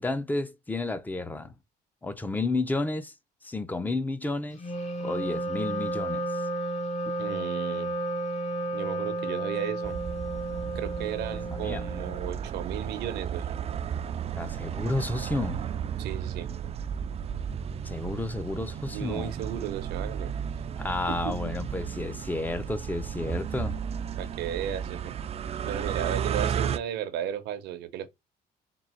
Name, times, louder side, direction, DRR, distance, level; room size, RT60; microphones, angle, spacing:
voice 1, 0.0-1.5 2.0-3.1 3.4-4.6 5.0-6.3 11.5-11.9 14.4-15.6 17.8-19.3 20.8-23.8, left 2 dB, 10° left, 0.5 m, -31 dB
Wind instrument woodwind instrument, 4.6-12.4, right 1 dB, 40° left, 1.1 m, -32 dB
voice 2, 7.2-7.9 8.7-10.0 10.7-13.5 16.0-16.5 18.9-20.3 21.1-21.3 24.2-25.1 25.6-28.1, right 10 dB, 80° right, 0.8 m, -34 dB
sound 1, 9.8-26.8, right 8 dB, 35° right, 0.4 m, -34 dB
3.8 x 2.4 x 4.3 m
cardioid pair, 110°, 17 cm